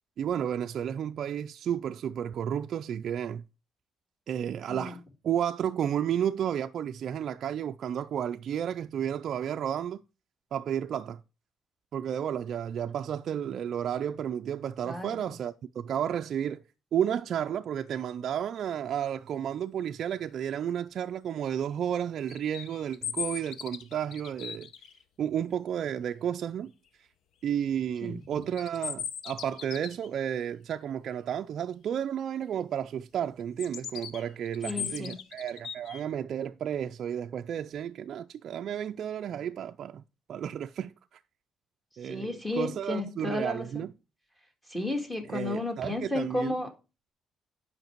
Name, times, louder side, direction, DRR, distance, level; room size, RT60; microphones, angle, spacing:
voice 1, 0.2-3.4 4.3-5.0 5.2-10.0 10.5-11.2 11.9-16.6 16.9-24.7 25.2-26.7 27.4-40.0 40.3-41.2 42.0-43.9 45.3-46.5, right 9 dB, 50° right, 0.4 m, -32 dB
voice 2, 14.8-15.2 28.0-28.2 34.6-35.1 42.0-43.8 44.7-46.7, left 2 dB, 10° left, 1.8 m, -33 dB
sound 1, 22.3-25.0 28.4-30.1 33.6-36.0, left 8 dB, 65° left, 0.8 m, -38 dB
10.5 x 5.7 x 4.5 m
cardioid pair, 160°, 0 cm